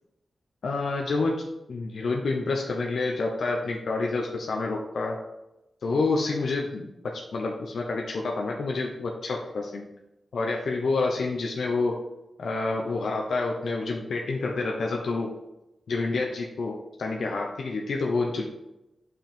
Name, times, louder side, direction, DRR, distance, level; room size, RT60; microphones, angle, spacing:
voice 1, 0.6-1.4 1.7-5.2 5.8-6.9 7.3-9.9 10.3-12.0 12.4-15.3 15.9-18.5, left 3 dB, 80° left, 0 dB, 0.9 m, -28 dB
5.9 x 5.5 x 4.4 m, 0.91 s
wide cardioid pair, 135°, 0 cm